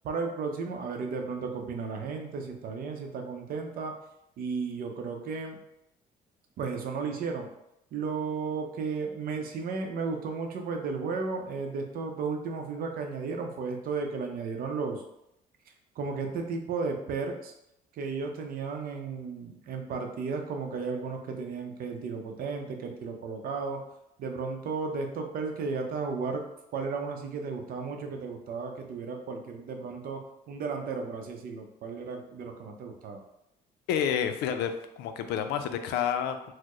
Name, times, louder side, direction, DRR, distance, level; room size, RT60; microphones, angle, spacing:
voice 1, 0.0-3.9 4.4-5.6 6.6-7.5 7.9-15.0 16.0-17.5 17.9-23.8 24.2-26.4 26.7-33.2, right 4 dB, 60° right, 4 dB, 0.6 m, -34 dB
voice 2, 33.9-34.7 35.0-36.5, left 8 dB, 80° left, 8 dB, 0.4 m, -29 dB
4.3 x 2.1 x 3.0 m, 0.83 s
cardioid pair, 110°, 17 cm